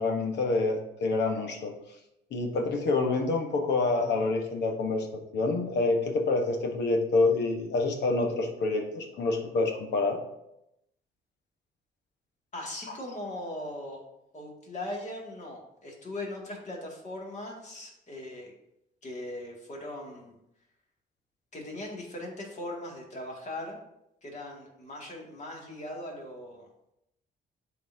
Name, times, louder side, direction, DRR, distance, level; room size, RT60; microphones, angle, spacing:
voice 1, 0.0-1.7 2.3-10.2, left 3 dB, 90° left, 3 dB, 1.2 m, -27 dB
voice 2, 12.5-14.0 14.3-18.5 19.0-20.4 21.5-23.8 24.2-26.7, left 1 dB, 45° left, -2 dB, 2.2 m, -39 dB
11.0 x 4.1 x 2.7 m, 0.83 s
cardioid pair, 110°, 17 cm